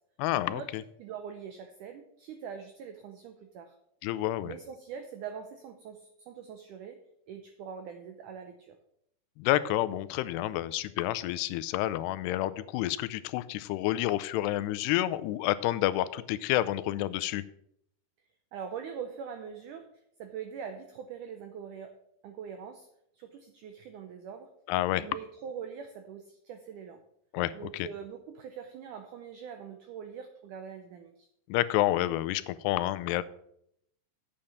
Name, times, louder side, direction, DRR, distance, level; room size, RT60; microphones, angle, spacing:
voice 1, 0.2-0.8 4.0-4.5 9.4-17.4 24.7-25.1 27.3-27.9 31.5-33.2, left 15 dB, 90° left, 15 dB, 2.7 m, -29 dB
voice 2, 1.0-3.8 4.4-7.0 7.3-8.8 18.5-19.9 20.2-22.0 22.2-22.9 23.1-24.5 25.0-27.0 27.5-31.3, right 7 dB, 85° right, 7 dB, 1.8 m, -43 dB
8.7 x 6.5 x 7.1 m, 0.74 s
omnidirectional pair, 4.6 m